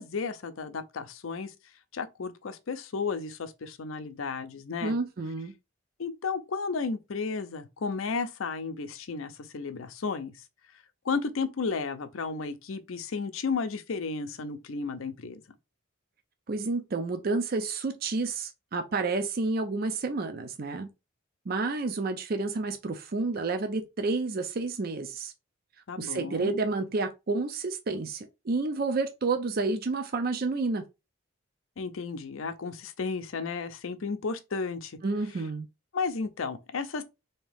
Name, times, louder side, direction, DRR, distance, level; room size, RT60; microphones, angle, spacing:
voice 1, 0.0-1.5 1.9-4.9 6.0-10.3 11.0-15.4 25.9-26.5 31.8-35.0 35.9-37.0, left 4 dB, 80° left, 0.6 m, -33 dB
voice 2, 4.8-5.5 16.5-20.9 21.5-25.3 26.0-30.9 35.0-35.7, right 3 dB, 45° right, 0.5 m, -30 dB
3.5 x 2.8 x 3.4 m
head